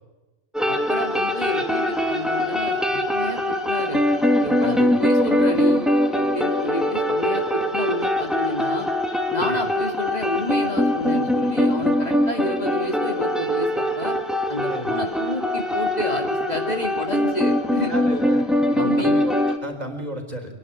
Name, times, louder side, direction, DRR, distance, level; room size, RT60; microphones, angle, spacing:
sound 1, 0.5-19.6, left 1 dB, ahead, 2.1 m, -22 dB
voice 1, 0.6-4.0 4.4-5.9 6.1-8.9 9.3-14.2 14.5-17.9 18.8-19.1, left 1 dB, 35° left, 2 dB, 2.6 m, -29 dB
voice 2, 17.9-20.6, right 1 dB, 35° right, 2 dB, 4.3 m, -33 dB
26.5 x 11.5 x 9.6 m, 1.1 s
omnidirectional pair, 1.3 m